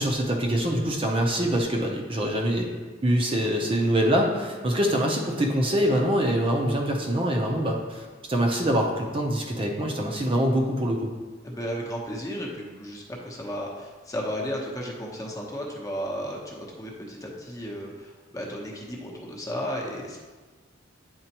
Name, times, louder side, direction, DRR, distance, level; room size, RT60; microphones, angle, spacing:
voice 1, 0.0-2.7 3.0-11.1, equal, 30° right, 0 dB, 0.7 m, -24 dB
voice 2, 11.4-20.2, equal, 20° left, -2 dB, 0.9 m, -34 dB
9.3 x 4.3 x 2.9 m, 1.3 s
head